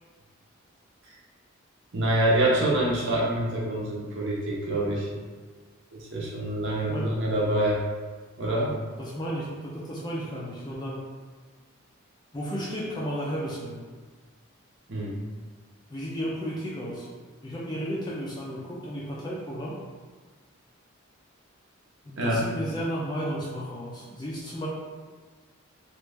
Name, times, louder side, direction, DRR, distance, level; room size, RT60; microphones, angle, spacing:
voice 1, 1.9-5.1 5.9-7.8 8.4-8.8 14.9-15.2 22.2-22.4, right 1 dB, 60° right, -4 dB, 0.8 m, -26 dB
voice 2, 9.0-11.0 12.3-13.8 15.9-17.1 17.4-19.8 22.1-24.7, equal, 20° left, -5 dB, 0.4 m, -33 dB
3.1 x 2.4 x 3.3 m, 1.4 s
head